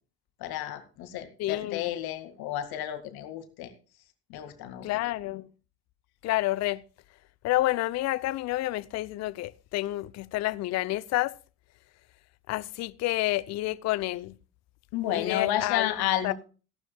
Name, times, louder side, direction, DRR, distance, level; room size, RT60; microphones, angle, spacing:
voice 1, 0.4-3.7 4.3-4.9 14.9-16.3, left 12 dB, 50° left, 2.1 m, -31 dB
voice 2, 1.4-1.9 4.8-5.5 6.2-6.8 7.4-11.3 12.5-14.3 15.1-15.9 16.2-16.3, left 17 dB, 35° left, 0.6 m, -29 dB
17.0 x 12.0 x 2.3 m
figure-of-eight pair, 70°, 47 cm